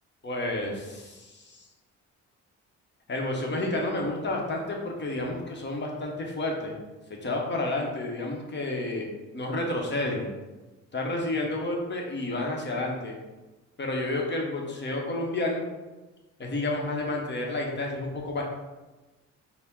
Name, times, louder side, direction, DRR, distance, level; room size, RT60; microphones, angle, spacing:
voice 1, 0.2-1.7 3.1-6.8 7.2-9.1 9.3-10.3 10.9-13.1 13.8-15.6 16.4-18.4, left 2 dB, 35° left, 0 dB, 0.9 m, -30 dB
5.7 x 2.1 x 3.6 m, 1.1 s
cardioid pair, 90°, 30 cm